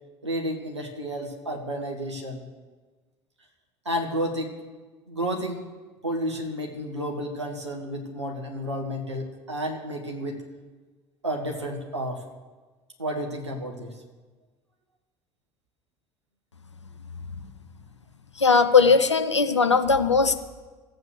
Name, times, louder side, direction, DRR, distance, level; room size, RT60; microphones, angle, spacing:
voice 1, 0.2-2.4 3.8-4.5 5.1-5.6 6.0-10.4 11.2-12.2 13.0-14.0, equal, 85° right, 1 dB, 1.7 m, -31 dB
voice 2, 18.4-20.3, left 5 dB, 85° left, 9 dB, 0.7 m, -19 dB
15.0 x 8.0 x 6.9 m, 1.3 s
figure-of-eight pair, 65°, 14 cm